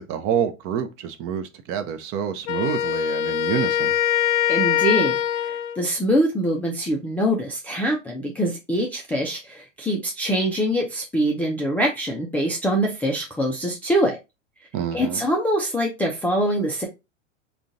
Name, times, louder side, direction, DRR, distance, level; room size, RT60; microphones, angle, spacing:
voice 1, 0.0-3.9 14.7-15.2, right 8 dB, 35° right, 0.6 m, -27 dB
Wind instrument woodwind instrument, 2.5-5.8, left 10 dB, 60° left, 0.6 m, -23 dB
voice 2, 4.5-14.2 14.9-16.8, equal, 5° left, 0.3 m, -24 dB
3.7 x 2.4 x 3.6 m
hypercardioid pair, 100°, 39 cm